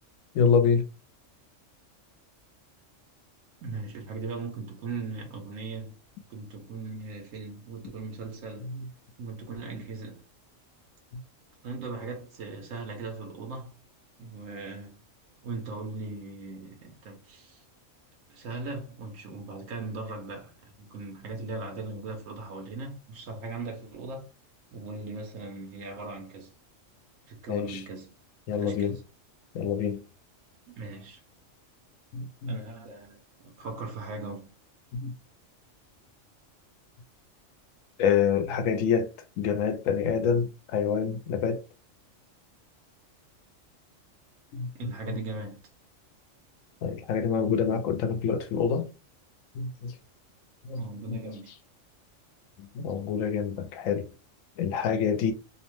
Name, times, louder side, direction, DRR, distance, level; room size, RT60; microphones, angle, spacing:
voice 1, 0.3-0.8 8.7-8.8 27.5-27.8 28.5-29.0 29.5-30.0 32.1-32.5 35.0-35.1 38.0-39.1 39.4-41.6 44.5-44.9 46.8-48.9 49.5-49.9 50.6-50.8 51.1-51.2 52.6-54.1 54.6-55.3, left 6 dB, 85° left, 1.0 m, -26 dB
voice 2, 3.6-6.0 6.3-8.7 9.2-10.2 11.6-13.7 14.2-15.0 15.4-17.6 18.3-24.3 24.7-26.5 27.3-28.1 28.6-29.1 30.7-31.2 32.5-34.5 44.8-45.7 50.8-51.5, right 3 dB, 90° right, 1.1 m, -39 dB
2.8 x 2.1 x 3.0 m
omnidirectional pair, 1.3 m